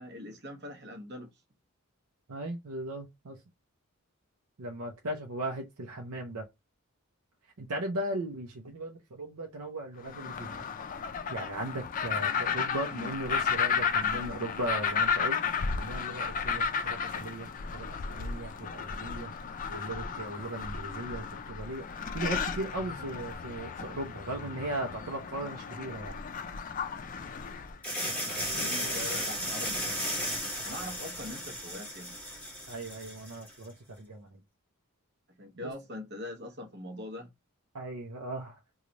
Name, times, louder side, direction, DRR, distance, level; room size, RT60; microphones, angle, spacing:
voice 1, 0.0-1.4 28.1-30.2 30.6-32.2 35.4-37.3, left 1 dB, 50° right, 0.9 m, -42 dB
voice 2, 2.3-3.4 4.6-6.4 7.6-10.6 11.3-15.4 15.8-19.3 19.6-26.2 28.0-29.0 32.7-34.4 35.6-35.7 37.7-38.6, right 1 dB, 80° right, 0.6 m, -38 dB
sound 1, 10.0-27.8, left 6 dB, 35° left, 0.4 m, -33 dB
sound 2, 27.8-33.5, equal, 5° left, 1.1 m, -34 dB
3.1 x 2.3 x 3.9 m
head